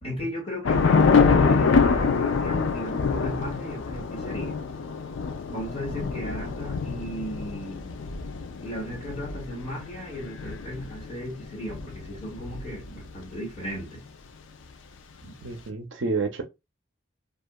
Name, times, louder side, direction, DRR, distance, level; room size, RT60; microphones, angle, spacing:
voice 1, 0.0-4.5 5.5-7.9 8.6-14.0 15.2-15.3, equal, 35° left, 1.7 m, -36 dB
Thunder / Rain, 0.6-13.2, left 5 dB, 80° left, 0.4 m, -25 dB
voice 2, 15.4-16.4, right 3 dB, 75° right, 0.6 m, -29 dB
2.7 x 2.4 x 2.2 m
head